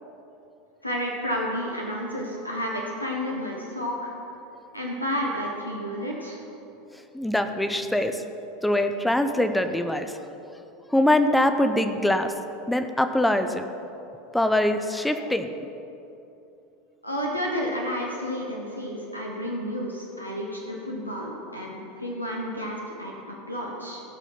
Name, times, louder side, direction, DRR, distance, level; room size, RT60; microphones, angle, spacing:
voice 1, 0.8-4.1 4.7-6.4 17.0-24.0, equal, 90° left, -2 dB, 1.3 m, -31 dB
voice 2, 7.1-8.2 8.6-10.2 10.9-12.3 12.7-13.7 14.3-15.5, left 1 dB, 5° left, 8 dB, 0.8 m, -23 dB
16.5 x 6.1 x 5.8 m, 2.9 s
figure-of-eight pair, 80°, 0 cm